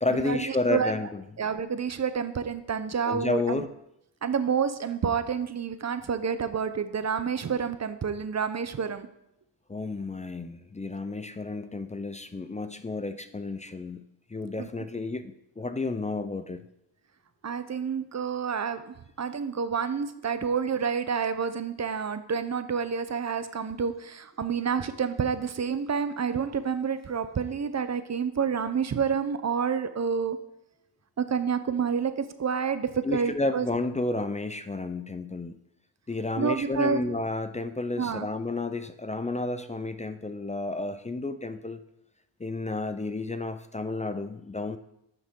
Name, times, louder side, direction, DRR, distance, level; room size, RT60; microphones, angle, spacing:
voice 1, 0.0-1.2 3.1-3.7 9.7-14.0 14.3-16.6 33.0-35.6 36.1-41.8 42.4-44.8, left 3 dB, 15° left, 10 dB, 0.5 m, -31 dB
voice 2, 1.4-3.6 4.2-9.1 14.6-14.7 17.4-30.4 31.2-33.7 36.4-37.1 38.0-38.3, right 6 dB, 35° right, 11 dB, 0.7 m, -29 dB
9.8 x 6.3 x 3.7 m, 0.81 s
cardioid pair, 80°, 47 cm